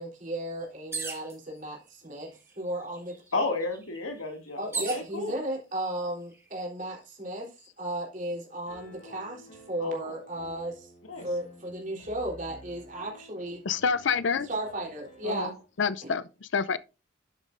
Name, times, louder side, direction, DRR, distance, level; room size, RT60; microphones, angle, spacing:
voice 1, 0.0-2.3 2.6-3.1 4.6-10.9 11.2-13.6 14.4-15.5, right 1 dB, 40° right, 3.5 m, -35 dB
sound 1, 0.9-1.4 2.3-2.4 2.7-5.1 5.9-6.4, right 4 dB, 10° right, 1.4 m, -37 dB
voice 2, 3.3-5.3 9.8-10.1 11.1-11.3 15.2-15.5, left 3 dB, 90° left, 2.2 m, -32 dB
Piano, 8.7-15.5, equal, 40° left, 4.0 m, -51 dB
voice 3, 13.6-14.5 15.8-16.8, left 5 dB, 65° left, 0.5 m, -27 dB
12.0 x 7.2 x 2.5 m
head